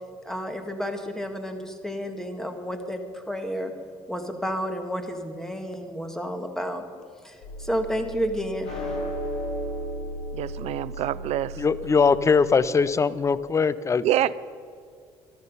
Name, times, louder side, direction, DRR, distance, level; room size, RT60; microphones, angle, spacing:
voice 1, 0.2-3.7 4.1-6.8 7.2-9.0, equal, 5° left, 6 dB, 1.7 m, -31 dB
sound 1, 7.4-12.5, equal, 85° left, 4.3 m, -34 dB
voice 2, 10.3-11.5 14.0-14.3, right 13 dB, 65° right, 18 dB, 0.5 m, -26 dB
voice 3, 11.6-14.0, left 5 dB, 25° left, 17 dB, 0.5 m, -21 dB
13.0 x 12.0 x 5.5 m, 2.2 s
supercardioid pair, 90°, 12 cm